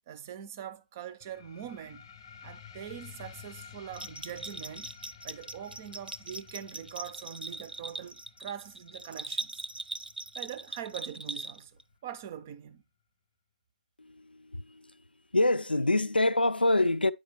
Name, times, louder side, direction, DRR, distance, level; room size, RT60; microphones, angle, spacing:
voice 1, 0.1-2.1 2.4-4.9 5.2-9.6 10.4-12.8, right 9 dB, 15° right, 0.3 m, -43 dB
sound 1, 1.2-12.3, left 8 dB, 20° left, 0.6 m, -53 dB
Bell, 3.9-11.8, right 2 dB, 90° right, 0.6 m, -40 dB
voice 2, 14.0-15.0 15.3-17.1, left 2 dB, 85° left, 0.4 m, -26 dB
8.5 x 5.1 x 2.8 m
figure-of-eight pair, 155°, 5 cm